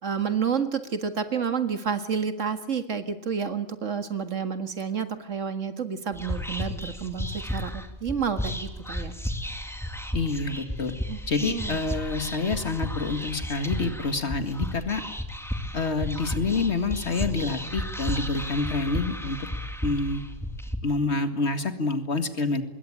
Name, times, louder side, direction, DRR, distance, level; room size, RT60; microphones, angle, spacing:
voice 1, 0.0-9.1 11.1-11.8, right 6 dB, 70° right, 8 dB, 2.2 m, -30 dB
Whispering, 6.1-20.8, equal, ahead, 2.2 m, -33 dB
voice 2, 10.1-10.9 11.3-15.0 15.7-19.5 19.8-20.2 20.8-22.6, left 3 dB, 55° left, 8 dB, 2.3 m, -27 dB
25.5 x 21.0 x 8.9 m, 0.88 s
omnidirectional pair, 1.3 m